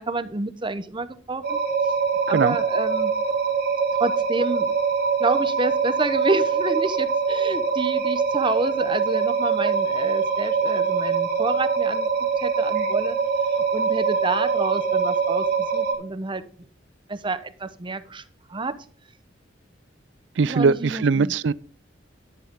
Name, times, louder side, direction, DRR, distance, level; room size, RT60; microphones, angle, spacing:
voice 1, 0.0-1.6 2.3-3.1 4.0-4.7 5.2-13.2 13.7-16.4 17.1-18.2 18.5-18.7 20.4-21.3, right 3 dB, 25° right, 0.8 m, -28 dB
sound 1, 1.4-15.9, right 5 dB, 55° right, 2.4 m, -23 dB
voice 2, 20.4-21.5, right 4 dB, 75° right, 0.4 m, -20 dB
10.5 x 10.0 x 3.7 m
head